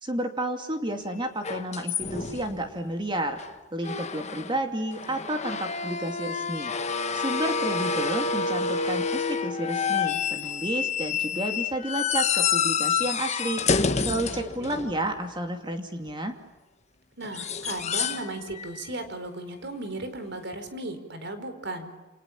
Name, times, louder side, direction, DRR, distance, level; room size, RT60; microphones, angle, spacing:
voice 1, 0.0-3.4 3.7-6.7 7.1-13.6 14.0-16.4, right 1 dB, 25° right, 5 dB, 2.6 m, -31 dB
sound 1, 1.4-2.7 3.4-3.5 3.8-4.6 4.9-15.2 17.2-18.3 18.6-18.9 20.7-20.8, left 5 dB, 35° left, 1.4 m, -28 dB
voice 2, 14.2-14.8 17.2-21.9, right 2 dB, 60° right, 8 dB, 4.5 m, -36 dB
29.0 x 28.0 x 7.3 m, 1.1 s
head